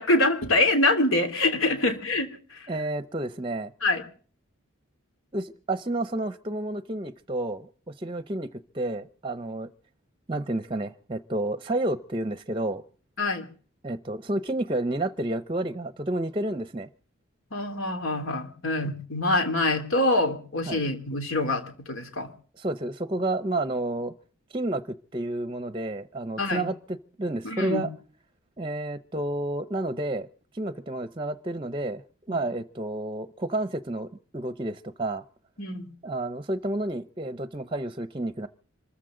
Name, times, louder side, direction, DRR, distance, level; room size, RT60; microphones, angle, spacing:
voice 1, 0.0-2.7 3.8-4.0 13.2-13.5 17.5-22.3 26.4-26.6 27.4-27.9 32.3-32.4 35.6-35.9, left 2 dB, 80° left, 6 dB, 3.2 m, -25 dB
voice 2, 2.7-3.7 5.3-8.5 8.7-9.7 10.3-12.8 13.8-16.9 20.7-20.8 22.6-24.1 24.5-26.8 27.2-27.9 28.6-30.3 30.5-32.0 32.3-35.2 36.0-38.5, right 1 dB, 25° right, 11 dB, 0.7 m, -30 dB
26.0 x 14.0 x 3.8 m, 0.42 s
head